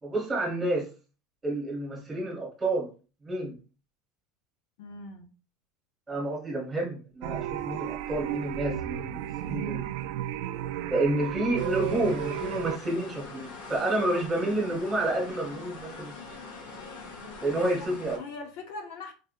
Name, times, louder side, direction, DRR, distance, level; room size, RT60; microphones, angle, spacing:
voice 1, 0.0-0.9 1.4-2.9 3.2-3.6 6.1-9.8 10.9-16.1 17.4-18.2, right 1 dB, 10° right, -3 dB, 2.6 m, -29 dB
voice 2, 4.8-5.3 17.9-19.1, left 3 dB, 60° left, 4 dB, 0.8 m, -41 dB
sound 1, 7.2-12.8, right 12 dB, 65° right, 0.4 m, -33 dB
sound 2, 11.6-18.2, left 3 dB, 75° left, 2.8 m, -43 dB
5.0 x 4.6 x 2.2 m, 0.34 s
cardioid pair, 175°, 0 cm